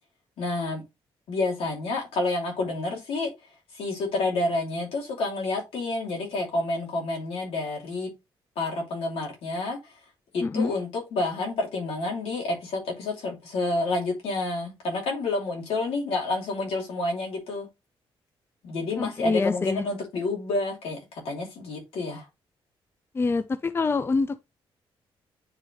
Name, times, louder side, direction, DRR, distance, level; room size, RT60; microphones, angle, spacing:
voice 1, 0.4-0.8 1.3-3.3 3.7-8.1 8.6-9.9 10.3-17.7 18.6-22.3, left 2 dB, 85° left, 2.8 m, -29 dB
voice 2, 10.4-10.7 19.0-19.9 23.1-24.4, left 4 dB, 25° left, 0.4 m, -26 dB
9.7 x 3.4 x 2.9 m
cardioid pair, 105°, 10 cm